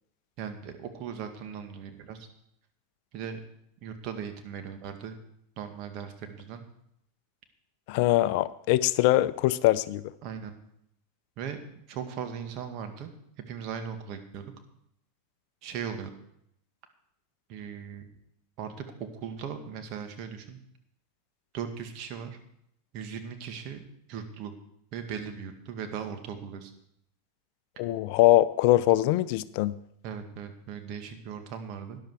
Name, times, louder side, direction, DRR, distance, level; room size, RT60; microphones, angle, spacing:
voice 1, 0.4-2.2 3.1-3.4 3.8-5.2 5.6-6.6 10.2-10.5 11.4-11.6 11.9-13.1 13.5-14.5 15.6-16.1 17.5-18.1 18.6-20.6 21.5-22.4 22.9-23.8 24.1-24.5 24.9-26.7 30.0-32.0, right 7 dB, 50° right, 6 dB, 2.0 m, -38 dB
voice 2, 7.9-10.0 27.8-29.7, left 16 dB, 55° left, 16 dB, 0.5 m, -22 dB
13.0 x 10.5 x 4.8 m, 0.74 s
hypercardioid pair, 90°, 0 cm